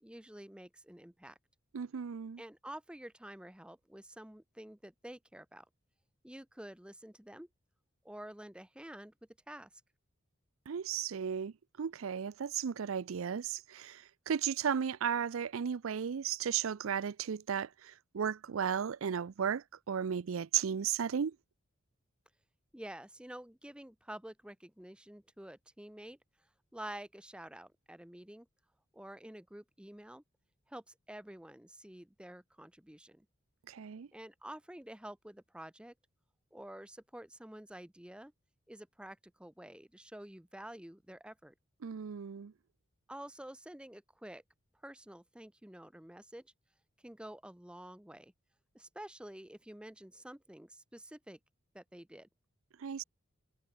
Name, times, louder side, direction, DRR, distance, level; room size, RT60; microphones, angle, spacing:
voice 1, 0.0-1.4 2.4-5.7 6.2-7.5 8.0-9.1 9.5-9.8 22.7-26.2 26.7-28.5 28.9-30.2 30.7-33.3 34.1-35.9 36.5-38.3 38.7-41.5 43.1-44.4 44.8-46.5 47.0-48.3 48.7-51.4 51.7-52.3, right 1 dB, 5° right, 0.7 m, -49 dB
voice 2, 1.7-2.4 10.7-11.5 11.8-21.4 33.7-34.1 41.8-42.5 52.8-53.0, right 7 dB, 90° right, 0.5 m, -35 dB
head